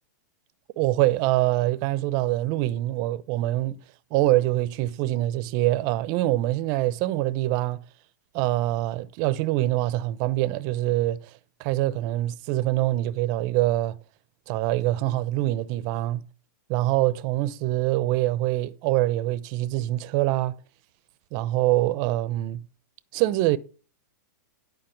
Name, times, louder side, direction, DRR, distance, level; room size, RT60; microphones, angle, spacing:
voice 1, 0.8-3.8 4.1-7.8 8.3-11.3 11.6-14.0 14.5-16.2 16.7-20.5 21.3-22.6 23.1-23.6, right 16 dB, 40° right, 0.7 m, -24 dB
10.5 x 5.2 x 7.2 m
hypercardioid pair, 130°, 10 cm